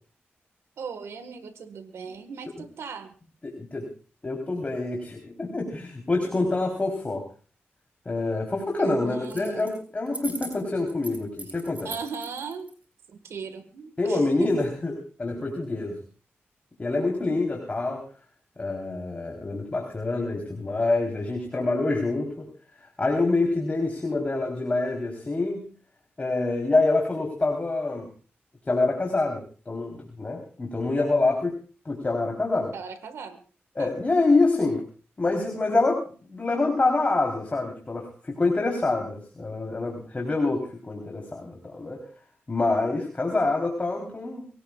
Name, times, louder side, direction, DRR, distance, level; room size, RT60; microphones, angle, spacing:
voice 1, 0.8-3.1 8.8-9.7 11.8-12.7 13.2-14.5 32.7-33.4 33.8-33.9, right 6 dB, 90° right, 9 dB, 1.6 m, -37 dB
voice 2, 3.4-3.9 4.2-7.3 8.1-11.9 14.0-14.9 15.2-16.0 16.8-18.0 18.6-22.5 23.0-25.7 26.2-28.1 28.7-31.5 31.9-32.7 33.8-34.8 35.2-42.0 42.5-44.5, left 3 dB, 35° left, 1 dB, 3.6 m, -26 dB
sound 1, 9.2-9.8 10.1-12.7, right 2 dB, 30° right, 5.6 m, -39 dB
23.5 x 18.0 x 2.4 m, 0.37 s
cardioid pair, 65°, 4 cm